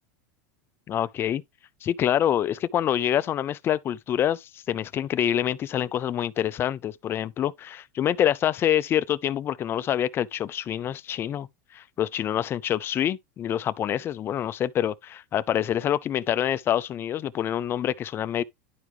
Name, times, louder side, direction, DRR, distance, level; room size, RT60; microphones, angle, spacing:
voice 1, 0.9-1.4 1.8-18.4, left 10 dB, 25° left, 0.4 m, -26 dB
11.0 x 4.7 x 3.1 m
supercardioid pair, 135°, 8 cm